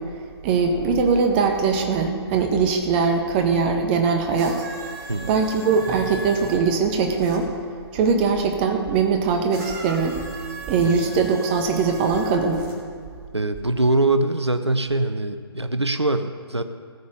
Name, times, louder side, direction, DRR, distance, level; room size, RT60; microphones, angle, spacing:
voice 1, 0.4-4.7 5.3-7.5 7.9-10.1 10.7-12.6, right 5 dB, 25° right, 4 dB, 1.4 m, -21 dB
sound 1, 4.3-7.4 9.5-12.8 13.7-13.8, right 2 dB, 40° right, 3.6 m, -38 dB
voice 2, 13.3-16.6, right 2 dB, 90° right, 9 dB, 0.9 m, -23 dB
18.5 x 7.1 x 5.1 m, 2.1 s
figure-of-eight pair, 135°, 14 cm